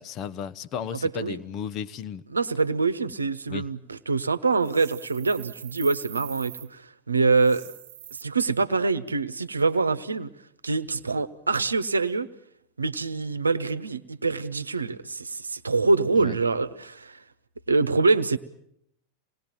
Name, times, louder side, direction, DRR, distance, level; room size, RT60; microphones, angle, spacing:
voice 1, 0.0-2.2 3.5-3.7 16.1-16.4, left 8 dB, 35° left, 13 dB, 0.9 m, -34 dB
voice 2, 1.0-1.4 2.3-7.6 8.1-10.3 10.6-12.3 12.8-17.2 17.7-18.4, right 3 dB, 80° right, 13 dB, 1.0 m, -25 dB
sound 1, 4.6-6.7 7.3-8.2, right 12 dB, 50° right, 1.1 m, -43 dB
26.5 x 19.5 x 8.9 m, 0.74 s
figure-of-eight pair, 90°, 0 cm